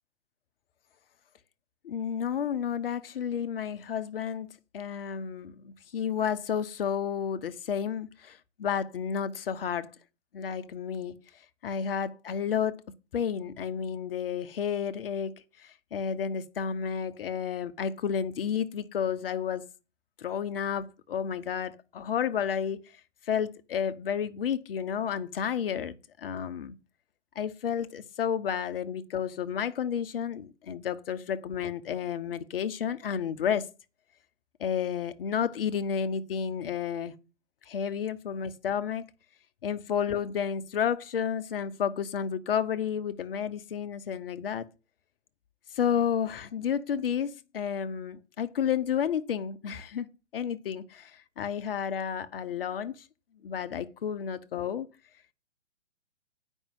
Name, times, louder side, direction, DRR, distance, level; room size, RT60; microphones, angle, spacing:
voice 1, 1.8-9.9 10.3-11.2 11.6-12.8 13.1-19.7 20.2-22.8 23.3-26.8 27.4-33.7 34.6-37.1 37.7-39.1 39.6-44.7 45.7-50.1 50.3-53.1 53.4-54.9, left 8 dB, 50° left, 0.9 m, -31 dB
8.8 x 5.4 x 7.6 m
figure-of-eight pair, 125°, 35 cm